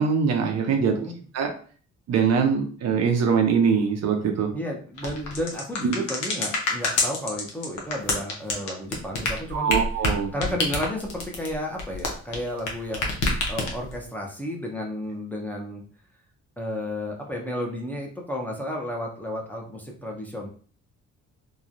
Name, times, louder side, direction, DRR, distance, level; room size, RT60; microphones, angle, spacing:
voice 1, 0.0-1.0 1.3-1.5 2.1-4.5 5.8-5.9 9.5-10.3, right 6 dB, 60° right, 3 dB, 0.6 m, -22 dB
voice 2, 0.7-1.1 4.5-9.7 10.3-13.1 13.5-15.8 16.6-20.5, left 1 dB, 5° left, -1 dB, 0.7 m, -32 dB
sound 1, 5.0-12.7 12.9-14.0, left 2 dB, 85° left, 0.8 m, -26 dB
3.0 x 2.2 x 2.5 m, 0.43 s
cardioid pair, 90°, 30 cm